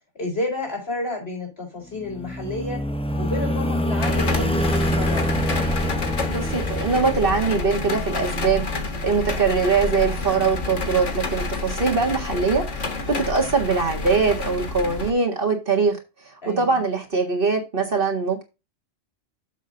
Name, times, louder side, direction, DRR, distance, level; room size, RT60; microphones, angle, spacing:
voice 1, 0.1-2.9 3.2-5.3 16.4-16.8, left 2 dB, 60° left, 5.0 m, -30 dB
sound 1, 2.0-7.7, equal, 10° left, 0.3 m, -25 dB
Wind instrument woodwind instrument, 3.0-11.0, left 1 dB, 15° right, 4.7 m, -39 dB
sound 2, 4.0-15.1, left 3 dB, 90° left, 1.8 m, -29 dB
voice 2, 6.3-16.0 16.3-18.4, right 4 dB, 50° right, 2.0 m, -22 dB
7.4 x 6.1 x 3.9 m
omnidirectional pair, 1.2 m